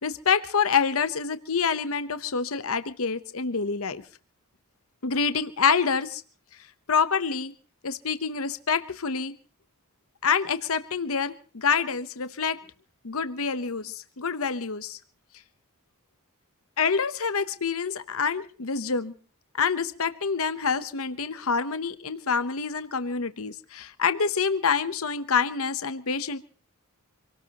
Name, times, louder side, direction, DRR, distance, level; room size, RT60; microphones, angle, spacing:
voice 1, 0.0-4.0 5.0-6.2 6.9-7.5 7.8-9.3 10.2-12.6 13.0-15.0 16.8-19.1 19.5-26.4, left 5 dB, 65° left, 12 dB, 0.9 m, -27 dB
26.5 x 18.0 x 3.0 m, 0.40 s
head